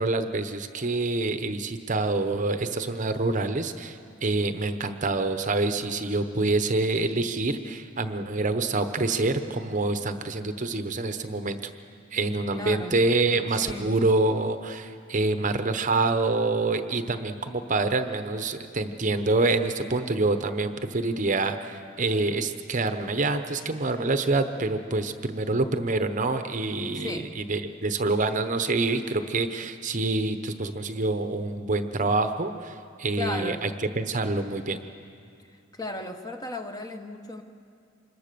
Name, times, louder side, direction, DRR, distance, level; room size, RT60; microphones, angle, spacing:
voice 1, 0.0-11.7 12.1-33.7 34.0-34.8, right 3 dB, 40° right, 9 dB, 0.9 m, -26 dB
voice 2, 12.5-13.0 13.5-13.9 26.9-27.3 33.2-33.7 35.7-37.4, left 2 dB, 20° left, 5 dB, 1.1 m, -35 dB
26.0 x 21.0 x 6.8 m, 2.4 s
head